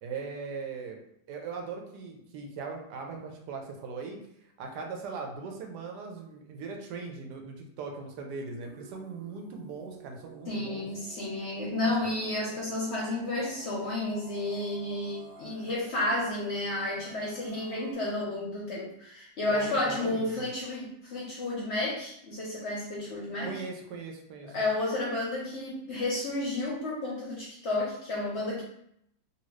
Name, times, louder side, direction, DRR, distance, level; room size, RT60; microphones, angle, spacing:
voice 1, 0.0-1.0 1.3-4.2 4.6-10.9 11.8-12.1 19.5-20.5 23.4-24.5, right 4 dB, 85° right, 2 dB, 1.2 m, -39 dB
sound 1, 8.6-17.9, right 3 dB, 50° right, 0.6 m, -51 dB
voice 2, 10.5-23.5 24.4-28.6, left 2 dB, 55° left, -4 dB, 0.8 m, -31 dB
2.8 x 2.6 x 3.1 m, 0.74 s
omnidirectional pair, 1.8 m